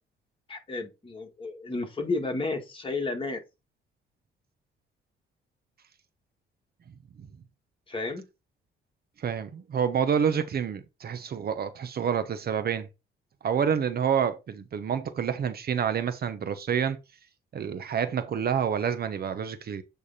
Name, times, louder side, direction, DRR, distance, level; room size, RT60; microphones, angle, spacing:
voice 1, 0.5-3.4 7.9-8.2, left 3 dB, 25° left, 2.0 m, -32 dB
voice 2, 9.2-12.9 13.4-17.0 17.5-19.8, right 7 dB, 50° right, 0.9 m, -28 dB
8.5 x 3.4 x 4.2 m
cardioid pair, 90°, 20 cm